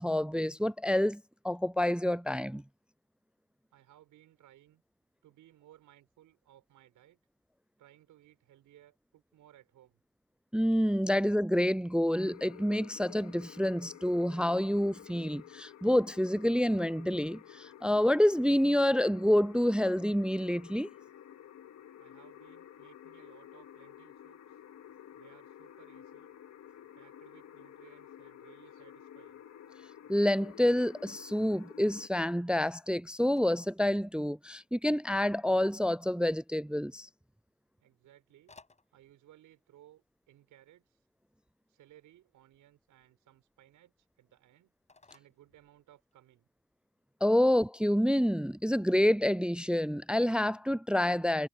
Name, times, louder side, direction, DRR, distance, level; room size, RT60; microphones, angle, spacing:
voice 1, 0.0-2.6 10.5-20.9 30.1-37.1 47.2-51.5, left 1 dB, 5° right, 0.3 m, -28 dB
voice 2, 3.7-4.8 5.2-7.2 7.8-10.0 22.0-24.6 25.1-26.3 26.9-29.4 37.8-38.5 38.9-41.1 41.7-44.7 45.1-46.5, right 13 dB, 85° right, 7.3 m, -61 dB
sound 1, 12.2-32.1, left 10 dB, 60° left, 2.4 m, -52 dB
Telephone, 32.4-46.3, left 3 dB, 25° left, 7.7 m, -68 dB
cardioid pair, 90°, 30 cm